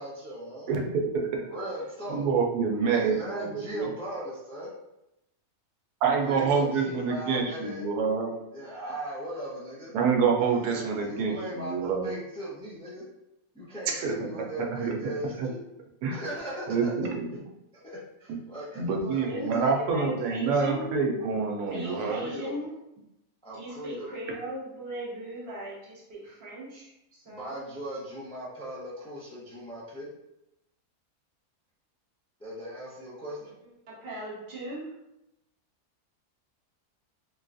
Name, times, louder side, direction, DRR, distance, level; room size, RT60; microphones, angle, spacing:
voice 1, 0.0-0.7 1.5-2.2 2.9-4.7 6.2-7.9 8.5-9.9 10.5-13.0 13.5-15.6 16.1-16.9 17.8-19.7 21.8-22.6 23.4-24.1 27.3-30.1 32.4-33.5, equal, 5° left, -7 dB, 0.4 m, -38 dB
voice 2, 0.7-1.5 2.1-3.9 6.0-8.3 9.9-12.1 14.0-14.1 14.7-15.0 15.4-15.5 16.0-16.2 16.7-17.2 18.3-18.4 18.8-22.2, right 5 dB, 90° right, 1 dB, 1.2 m, -27 dB
voice 3, 18.9-20.9 21.7-22.7 23.5-27.6 33.9-34.9, equal, 45° right, -6 dB, 1.3 m, -38 dB
3.6 x 2.3 x 2.5 m, 0.86 s
omnidirectional pair, 1.6 m